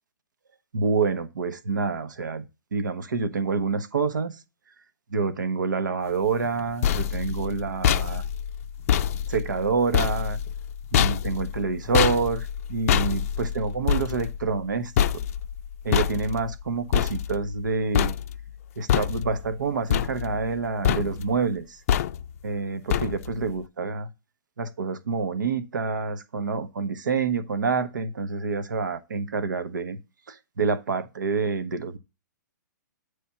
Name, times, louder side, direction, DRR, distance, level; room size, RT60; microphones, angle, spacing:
voice 1, 0.7-2.4 2.7-4.4 5.1-8.2 9.3-10.4 10.9-14.9 15.8-18.1 18.8-21.8 22.4-24.1 24.6-30.0 30.3-32.0, right 4 dB, 75° right, 0.8 m, -27 dB
sound 1, 6.4-17.7 17.9-18.5 18.9-19.5 19.9-20.6 20.8-21.4 21.9-22.4 22.9-23.4, left 9 dB, 50° left, 0.4 m, -26 dB
9.2 x 3.3 x 5.6 m
hypercardioid pair, 130°, 10 cm